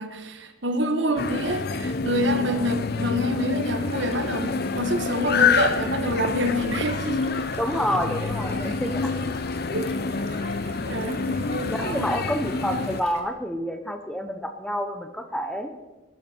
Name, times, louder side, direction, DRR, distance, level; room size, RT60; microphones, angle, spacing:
voice 1, 0.0-7.4 9.7-9.9 10.8-12.1, equal, 60° right, 7 dB, 1.5 m, -27 dB
sound 1, 1.2-13.0, left 4 dB, 50° left, 0.6 m, -27 dB
sound 2, 3.5-13.2, right 3 dB, 30° right, 1.8 m, -45 dB
voice 2, 7.6-9.1 11.7-15.7, equal, 5° left, 6 dB, 0.8 m, -28 dB
19.0 x 12.5 x 4.5 m, 1.1 s
head